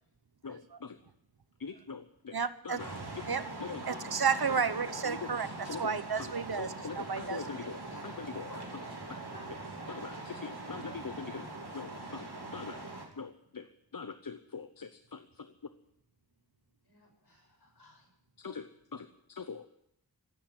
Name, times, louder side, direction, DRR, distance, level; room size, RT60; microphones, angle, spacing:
voice 1, 0.4-1.0 1.6-2.4 2.6-2.9 3.6-3.8 5.0-5.2 5.6-5.9 6.6-8.5 9.9-11.5 11.7-12.8 13.2-13.7 13.9-15.5 18.4-19.7, left 5 dB, 60° left, 10 dB, 0.8 m, -43 dB
voice 2, 2.3-2.8 3.3-3.5 3.9-7.4, right 6 dB, 70° right, 13 dB, 1.0 m, -32 dB
sound 1, 2.8-13.1, right 2 dB, 90° right, 3.1 m, -42 dB
voice 3, 7.2-8.6 9.3-9.4 16.8-18.1, left 2 dB, 80° left, 0 dB, 6.5 m, -54 dB
15.5 x 8.9 x 9.8 m, 0.77 s
wide cardioid pair, 50°, 38 cm